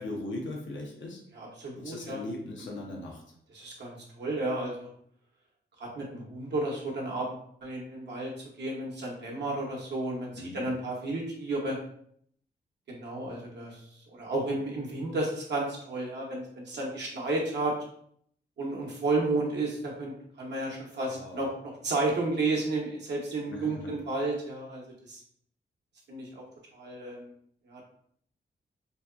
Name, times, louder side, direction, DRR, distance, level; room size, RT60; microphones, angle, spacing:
voice 1, 0.0-1.2 1.8-3.2 10.4-10.7 21.0-21.4 23.5-23.9, left 2 dB, 85° left, 0 dB, 0.5 m, -39 dB
voice 2, 1.3-2.2 3.5-4.9 5.8-8.3 8.6-11.8 12.9-17.7 18.6-21.5 21.8-24.8 25.1-25.2 26.1-26.4 26.7-27.3 27.7-27.8, right 2 dB, 65° right, -2 dB, 0.7 m, -32 dB
2.7 x 2.2 x 2.2 m, 0.65 s
wide cardioid pair, 130°, 19 cm